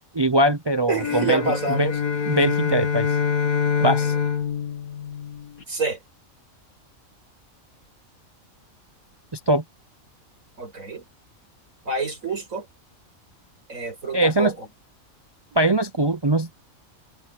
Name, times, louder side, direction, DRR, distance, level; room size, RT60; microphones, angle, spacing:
voice 1, 0.1-1.4 1.8-1.9 2.3-3.1 3.8-4.1 9.3-9.6 14.1-14.5 15.6-16.5, right 1 dB, 40° right, 0.3 m, -21 dB
sound 1, 0.9-5.6, left 7 dB, 85° left, 2.8 m, -25 dB
voice 2, 0.9-2.0 3.8-4.1 5.7-6.0 10.6-11.0 11.9-12.7 13.7-14.7 15.5-15.6, right 3 dB, 70° right, 5.8 m, -28 dB
omnidirectional pair, 1.5 m